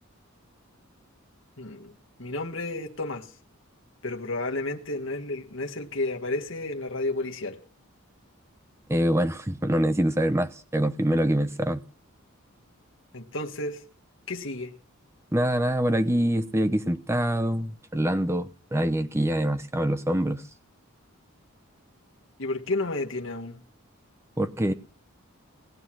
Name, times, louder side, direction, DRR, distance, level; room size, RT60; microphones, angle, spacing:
voice 1, 1.6-1.9 2.2-3.3 4.0-7.6 13.1-13.8 14.3-14.7 22.4-23.6, left 2 dB, 60° left, 1.7 m, -31 dB
voice 2, 8.9-11.8 15.3-20.4 24.4-24.7, right 1 dB, 10° right, 0.9 m, -25 dB
19.5 x 9.7 x 6.2 m
head